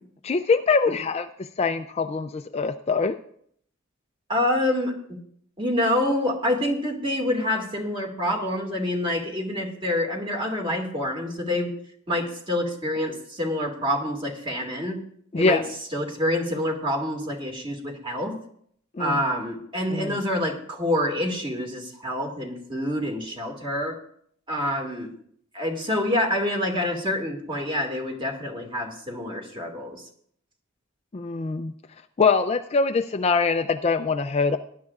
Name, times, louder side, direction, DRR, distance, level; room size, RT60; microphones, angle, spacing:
voice 1, 0.2-3.2 15.3-15.6 18.9-19.2 19.9-20.2 31.1-31.7 32.2-34.6, left 4 dB, 30° left, 8 dB, 0.4 m, -23 dB
voice 2, 4.3-4.9 5.6-11.7 12.1-15.0 15.3-15.6 15.9-18.4 19.0-24.0 24.5-25.1 25.5-30.0, left 1 dB, 25° right, 1 dB, 2.0 m, -27 dB
19.0 x 11.0 x 2.4 m, 0.64 s
head